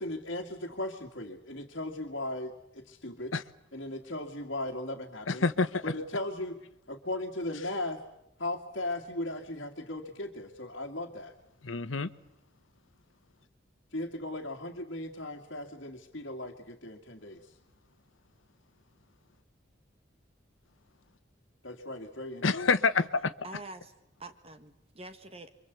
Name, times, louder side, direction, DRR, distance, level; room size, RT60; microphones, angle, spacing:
voice 1, 0.0-3.3 3.7-5.4 5.8-6.6 6.9-8.0 8.4-11.3 13.9-17.4 21.6-22.4, left 1 dB, 60° left, -1 dB, 2.3 m, -37 dB
voice 2, 5.3-5.8 11.6-12.1 22.4-23.3, left 4 dB, 90° left, 13 dB, 1.1 m, -27 dB
voice 3, 23.4-23.9 24.2-25.5, right 2 dB, 30° right, 9 dB, 1.4 m, -46 dB
27.5 x 24.0 x 8.3 m, 0.83 s
head